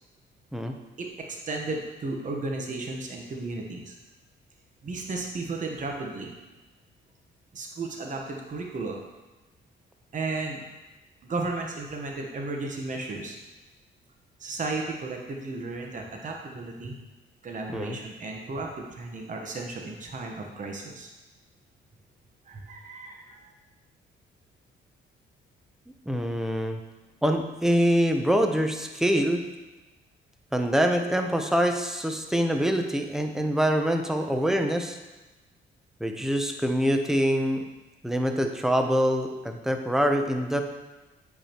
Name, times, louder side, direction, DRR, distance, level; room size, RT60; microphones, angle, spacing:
voice 1, 1.0-3.9 4.8-6.4 7.5-9.0 10.1-10.6 11.2-13.4 14.4-17.0 17.4-21.1 22.5-23.5, right 3 dB, 40° right, 1 dB, 1.1 m, -34 dB
voice 2, 26.1-26.8 27.2-29.4 30.5-35.0 36.0-37.7 38.0-40.6, equal, ahead, 4 dB, 0.7 m, -25 dB
8.1 x 5.3 x 3.0 m, 1.1 s
cardioid pair, 90°, 20 cm